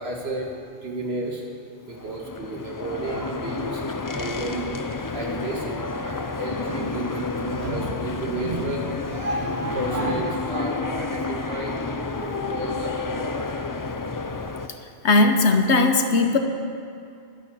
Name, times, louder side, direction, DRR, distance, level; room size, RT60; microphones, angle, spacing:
voice 1, 0.0-1.5 1.8-4.7 5.1-13.5, right 1 dB, 65° right, 0 dB, 2.0 m, -31 dB
sound 1, 1.9-14.7, left 3 dB, 35° left, 0.3 m, -30 dB
voice 2, 15.0-16.4, left 3 dB, 80° left, 5 dB, 1.3 m, -18 dB
11.5 x 10.0 x 7.1 m, 2.4 s
omnidirectional pair, 1.1 m